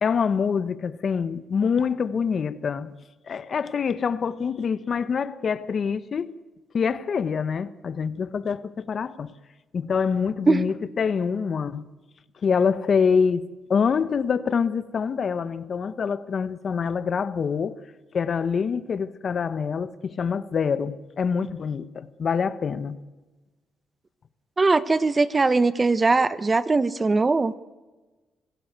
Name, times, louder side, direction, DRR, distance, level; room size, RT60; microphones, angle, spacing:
voice 1, 0.0-2.9 3.3-6.3 6.7-9.3 9.7-11.9 12.4-17.8 18.1-23.0, left 6 dB, 50° left, 1.0 m, -25 dB
voice 2, 24.6-27.5, right 3 dB, 25° right, 0.9 m, -20 dB
25.5 x 16.5 x 8.1 m
cardioid pair, 90°, 0 cm